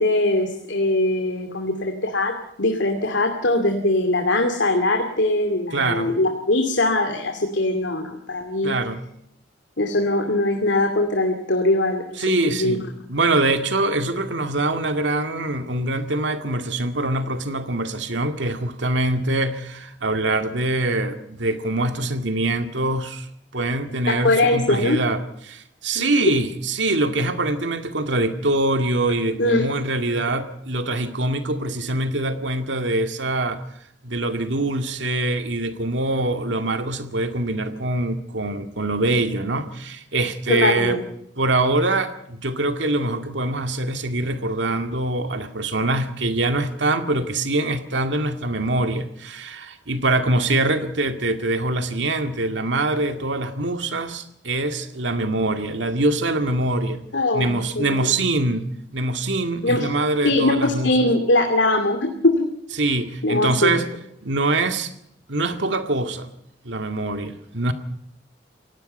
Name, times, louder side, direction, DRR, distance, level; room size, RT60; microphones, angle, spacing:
voice 1, 0.0-2.3 2.6-8.7 9.8-12.8 24.2-25.0 25.9-26.0 29.4-29.6 40.5-41.0 57.1-58.1 59.6-59.9 60.2-62.5 63.2-63.8, left 2 dB, 80° left, 4 dB, 2.6 m, -21 dB
voice 2, 5.7-6.1 8.6-9.0 12.2-12.8 13.1-23.3 23.5-33.6 34.0-41.0 41.4-57.0 57.3-58.7 58.9-60.9 62.8-63.8 64.2-64.9 65.3-66.3 66.6-67.7, right 2 dB, 75° right, 7 dB, 2.1 m, -24 dB
28.5 x 17.5 x 5.5 m, 0.73 s
head